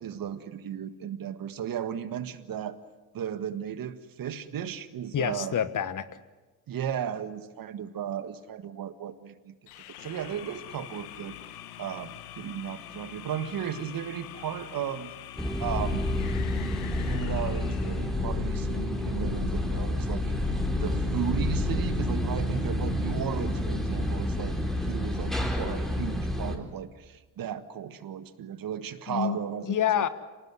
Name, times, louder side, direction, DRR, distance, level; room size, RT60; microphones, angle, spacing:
voice 1, 0.0-2.8 3.1-5.6 6.7-9.5 10.0-11.3 11.8-15.1 15.6-16.2 17.0-20.5 20.8-30.1, right 9 dB, 50° right, 12 dB, 1.8 m, -35 dB
voice 2, 5.1-6.1 29.1-29.4 29.6-30.1, left 9 dB, 45° left, 14 dB, 1.5 m, -27 dB
sound 1, 9.7-18.2, left 11 dB, 85° left, 1.5 m, -44 dB
sound 2, 15.4-26.6, left 1 dB, ahead, 4.0 m, -29 dB
26.0 x 19.0 x 9.8 m, 1.2 s
hypercardioid pair, 55°, 43 cm